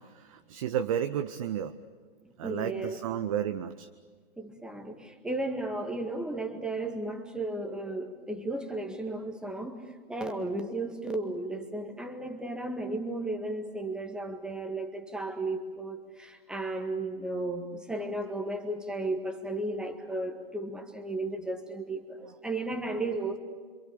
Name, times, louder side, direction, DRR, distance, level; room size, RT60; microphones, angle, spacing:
voice 1, 0.2-1.7 2.4-3.9, right 9 dB, 35° right, 9 dB, 1.0 m, -32 dB
voice 2, 2.4-3.1 4.4-9.8 10.1-23.4, right 2 dB, 5° right, 6 dB, 1.8 m, -34 dB
27.0 x 26.0 x 7.0 m, 1.5 s
figure-of-eight pair, 120°, 30 cm